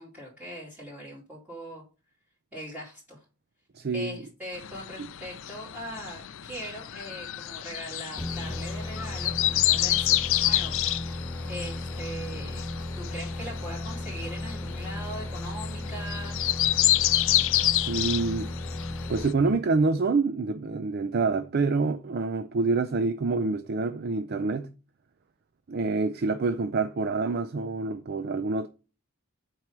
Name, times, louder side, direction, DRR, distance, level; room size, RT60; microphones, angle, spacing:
voice 1, 0.0-1.8 2.5-3.2 3.9-10.8 11.5-12.7 13.0-16.4, equal, 10° right, 2.4 m, -41 dB
voice 2, 3.8-4.2 17.9-18.5 19.1-24.7 25.7-28.7, right 3 dB, 45° right, 0.4 m, -27 dB
sound 1, 4.5-19.3, left 14 dB, 60° left, 0.4 m, -29 dB
sound 2, 8.2-19.9, left 1 dB, 10° left, 1.0 m, -35 dB
7.6 x 4.7 x 4.8 m
head